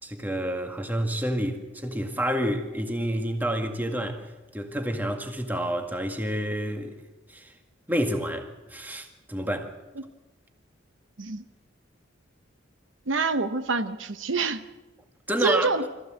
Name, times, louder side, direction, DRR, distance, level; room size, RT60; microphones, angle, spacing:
voice 1, 0.0-7.0 7.3-7.5 7.9-9.7 15.3-15.7, equal, 10° right, 1.9 m, -29 dB
voice 2, 13.1-14.6 15.4-15.8, right 3 dB, 75° right, 1.0 m, -26 dB
25.5 x 15.0 x 7.8 m
head